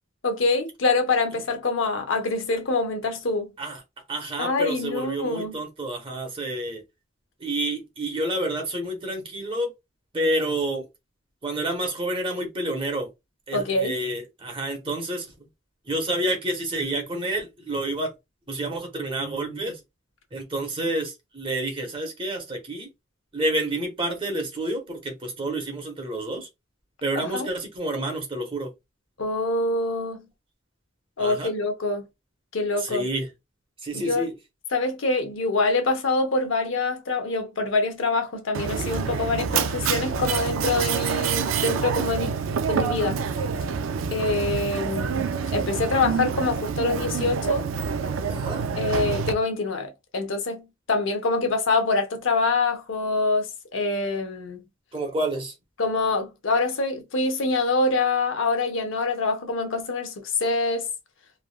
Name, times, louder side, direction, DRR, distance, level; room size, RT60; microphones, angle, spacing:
voice 1, 0.2-3.5 4.4-5.6 13.5-14.0 27.1-27.5 29.2-30.3 31.2-32.1 32.5-33.1 33.9-34.3 34.7-42.3 42.7-43.2 44.1-47.7 48.8-54.6 55.8-60.9, left 3 dB, 70° left, 0.7 m, -25 dB
voice 2, 4.1-6.8 7.4-9.7 10.1-10.8 11.4-13.1 13.5-15.2 15.9-18.1 18.5-19.7 20.3-22.9 23.3-26.5 27.0-28.7 31.2-31.5 32.9-33.2 33.8-34.3 48.3-48.6 54.9-55.5, right 1 dB, 25° right, 0.9 m, -29 dB
Mechanisms, 38.5-49.3, right 6 dB, 75° right, 0.4 m, -27 dB
3.3 x 2.4 x 2.3 m
head